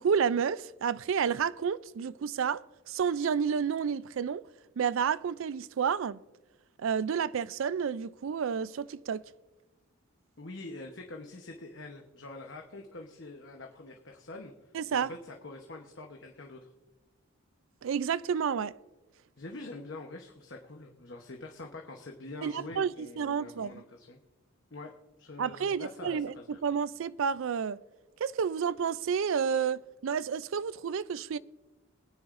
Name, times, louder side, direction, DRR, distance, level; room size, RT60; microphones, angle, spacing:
voice 1, 0.0-2.6 2.9-4.4 4.8-6.2 6.8-9.2 14.7-15.1 17.8-18.7 22.4-22.9 23.2-23.7 25.4-26.3 26.6-27.8 28.2-31.4, right 7 dB, 65° right, 0.3 m, -30 dB
voice 2, 10.4-16.7 19.4-24.2 24.7-24.9 25.2-26.6, left 2 dB, 55° left, 0.9 m, -45 dB
23.0 x 9.6 x 2.5 m
head